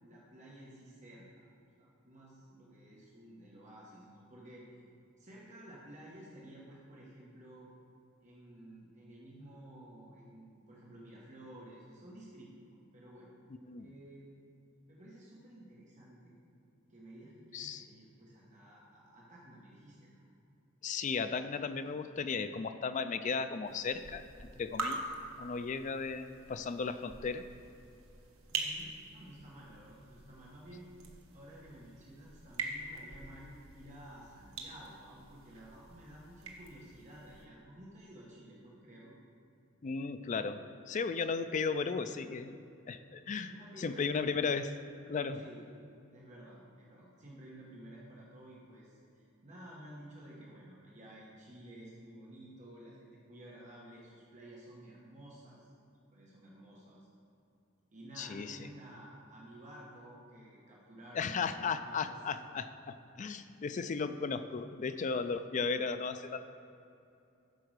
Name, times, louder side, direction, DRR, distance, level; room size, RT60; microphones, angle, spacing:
voice 1, 0.0-1.5 1.8-4.6 5.2-7.7 8.2-13.3 13.8-14.4 14.9-16.3 16.9-20.3 28.5-30.9 31.3-39.1 43.5-44.1 45.3-45.6 46.1-55.7 56.1-57.1 57.9-62.2, right 1 dB, 35° right, -5 dB, 1.3 m, -53 dB
voice 2, 17.5-17.8 20.8-25.1 25.4-27.5 39.8-40.6 40.9-42.6 42.9-43.5 43.8-44.7 45.1-45.4 58.2-58.6 61.1-66.5, left 5 dB, 35° left, 10 dB, 0.3 m, -35 dB
sound 1, 23.7-37.5, right 3 dB, 85° right, 1.2 m, -45 dB
10.5 x 4.8 x 6.5 m, 2.7 s
head